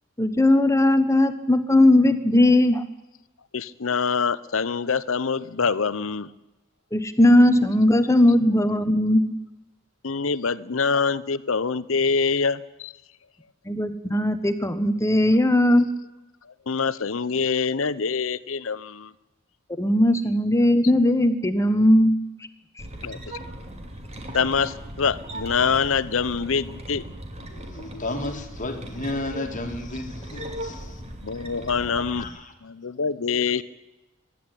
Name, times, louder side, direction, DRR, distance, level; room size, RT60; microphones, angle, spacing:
voice 1, 0.2-2.8 6.9-9.2 13.7-15.8 19.8-22.2, left 1 dB, 15° left, 10 dB, 1.3 m, -18 dB
voice 2, 3.5-6.3 10.0-12.9 16.4-19.1 23.0-23.4 24.3-27.0 31.2-33.6, left 5 dB, 75° left, 17 dB, 0.8 m, -25 dB
sound 1, 22.8-32.3, right 1 dB, 30° right, 2.8 m, -38 dB
voice 3, 27.5-31.0 31.6-32.5 33.3-33.6, left 2 dB, 40° left, 5 dB, 2.2 m, -33 dB
23.5 x 11.0 x 9.9 m, 1.0 s
head